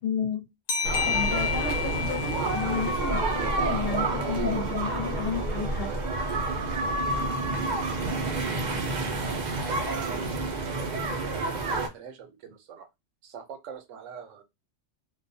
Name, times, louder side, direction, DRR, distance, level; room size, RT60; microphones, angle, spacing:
voice 1, 0.0-0.5 1.0-5.9, left 6 dB, 55° left, 0.9 m, -32 dB
sound 1, 0.7-4.0, left 6 dB, 85° left, 0.9 m, -31 dB
sound 2, 0.8-11.9, right 2 dB, 50° right, 0.5 m, -29 dB
voice 2, 7.7-9.0 9.5-10.7 11.0-12.9 13.2-14.4, right 7 dB, 80° right, 1.0 m, -44 dB
2.3 x 2.2 x 2.6 m
omnidirectional pair, 1.3 m